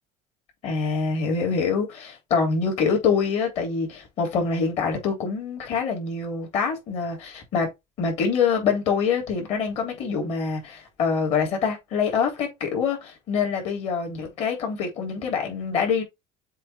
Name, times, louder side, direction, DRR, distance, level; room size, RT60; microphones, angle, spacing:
voice 1, 0.6-7.7 8.0-16.0, left 5 dB, 50° left, 3.5 m, -25 dB
7.5 x 3.3 x 4.5 m
cardioid pair, 150°, 14 cm